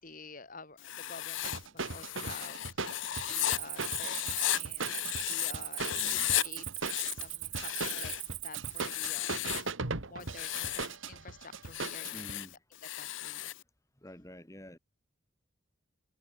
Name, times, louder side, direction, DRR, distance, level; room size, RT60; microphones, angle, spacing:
voice 1, 0.0-2.8 3.3-4.9 5.2-6.7 7.1-8.1 8.4-9.4 10.1-12.5 12.9-13.5, left 4 dB, 40° left, 4.7 m, -49 dB
Writing, 0.8-5.5 5.8-6.4 6.8-8.3 8.7-9.7 10.2-10.9 11.6-13.6, left 14 dB, 65° left, 0.7 m, -35 dB
sound 1, 1.4-12.3, right 4 dB, 75° right, 1.9 m, -39 dB
Cricket, 3.1-8.8, right 16 dB, 40° right, 0.4 m, -40 dB
voice 2, 5.9-6.3 12.1-12.5 14.0-14.8, equal, 15° left, 3.7 m, -48 dB
head